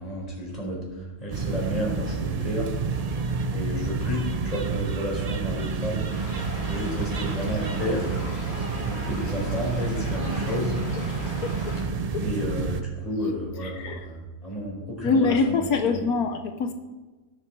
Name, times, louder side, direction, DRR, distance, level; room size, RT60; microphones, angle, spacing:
voice 1, 0.0-2.7 3.5-6.1 6.6-8.1 8.9-10.8 12.2-16.0, equal, 25° left, -3 dB, 4.5 m, -31 dB
sound 1, 1.3-12.8, right 5 dB, 75° right, 0.3 m, -29 dB
Stream / Trickle dribble, 6.1-11.8, equal, 40° left, 5.2 m, -37 dB
voice 2, 13.6-14.0 15.0-16.7, left 4 dB, 75° left, 6 dB, 1.3 m, -24 dB
18.0 x 7.7 x 4.6 m, 1.2 s
omnidirectional pair, 1.6 m